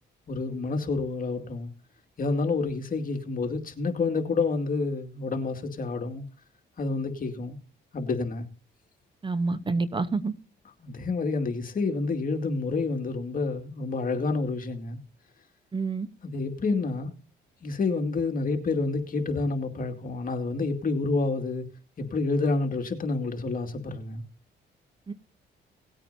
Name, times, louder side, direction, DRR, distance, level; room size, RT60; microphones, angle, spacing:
voice 1, 0.3-1.7 2.2-6.2 6.8-7.6 7.9-8.5 10.8-15.0 16.2-17.1 17.6-21.7 22.0-24.2, left 3 dB, 45° left, 2.3 m, -28 dB
voice 2, 9.2-10.3 15.7-16.1 25.1-25.2, right 3 dB, 25° right, 0.9 m, -28 dB
18.5 x 8.9 x 2.7 m
cardioid pair, 90°, 20 cm